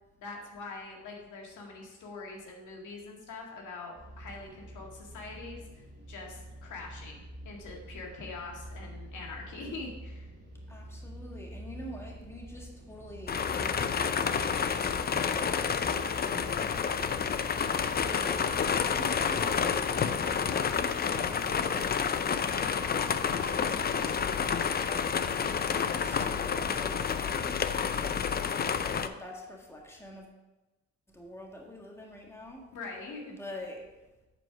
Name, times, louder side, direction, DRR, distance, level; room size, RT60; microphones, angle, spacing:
voice 1, 0.2-7.1 7.4-10.3 32.7-33.4, left 3 dB, 75° left, 0 dB, 1.9 m, -43 dB
sound 1, 4.0-21.5, right 1 dB, 35° right, 2.6 m, -47 dB
voice 2, 10.7-15.7 16.2-17.2 17.9-23.3 23.7-24.7 25.4-28.6 29.0-30.3 31.1-32.7 33.3-33.9, left 1 dB, 10° left, -1 dB, 1.8 m, -46 dB
sound 2, 13.3-29.1, left 6 dB, 30° left, 0.5 m, -29 dB
8.0 x 4.7 x 6.0 m, 1.1 s
cardioid pair, 90°, 30 cm